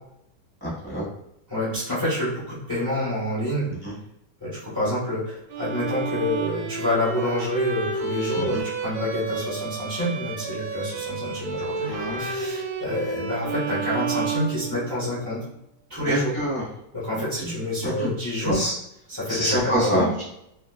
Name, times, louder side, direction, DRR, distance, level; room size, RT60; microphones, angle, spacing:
voice 1, 0.6-1.1 3.8-3.9 8.4-8.6 11.9-12.2 16.0-16.6 17.1-17.6 17.8-18.1 18.5-18.7 19.3-20.2, equal, 15° right, -9 dB, 1.1 m, -27 dB
voice 2, 1.5-3.7 4.4-15.4 15.9-16.3 16.9-18.6 19.1-20.1, left 1 dB, 20° left, -10 dB, 0.5 m, -27 dB
Bowed string instrument, 5.5-15.2, right 5 dB, 70° right, 0.9 m, -31 dB
3.2 x 3.0 x 2.2 m, 0.81 s
omnidirectional pair, 2.3 m